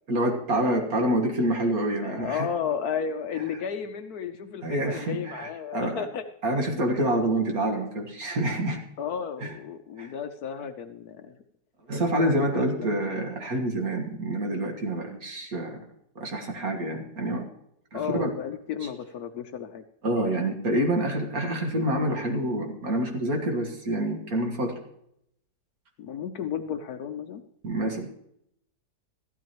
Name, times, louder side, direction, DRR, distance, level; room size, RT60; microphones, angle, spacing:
voice 1, 0.1-2.5 4.6-6.0 6.4-8.8 9.4-9.5 10.0-10.1 11.9-15.8 16.2-17.4 17.9-18.3 20.0-24.8 27.6-28.1, right 1 dB, 55° right, 2 dB, 2.1 m, -27 dB
voice 2, 2.0-6.2 9.0-11.4 12.6-13.1 17.9-19.8 26.0-27.4, left 7 dB, 65° left, 8 dB, 1.1 m, -33 dB
14.5 x 12.0 x 3.0 m, 0.74 s
omnidirectional pair, 1.9 m